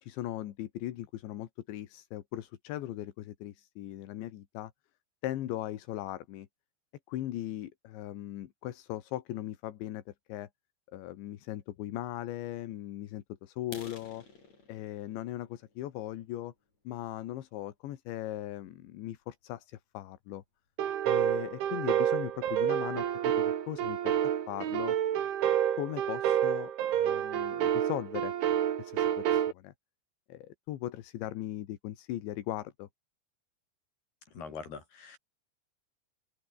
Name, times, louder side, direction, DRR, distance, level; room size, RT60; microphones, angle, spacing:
voice 1, 0.0-4.7 5.2-6.5 7.1-10.5 10.9-14.2 14.7-16.5 16.9-20.4 21.1-25.0 25.8-28.3 28.8-29.7 30.3-32.9, left 13 dB, 80° left, 3.9 m, -39 dB
sound 1, 13.6-17.4 17.9-18.1 18.5-18.6 19.1-19.2 19.5-19.6 20.1-20.2 20.4-20.9, left 4 dB, 35° left, 7.4 m, -52 dB
sound 2, 20.8-29.5, right 10 dB, 85° right, 5.0 m, -29 dB
voice 2, 34.3-35.2, left 5 dB, 60° left, 8.1 m, -43 dB
open air
omnidirectional pair, 5.2 m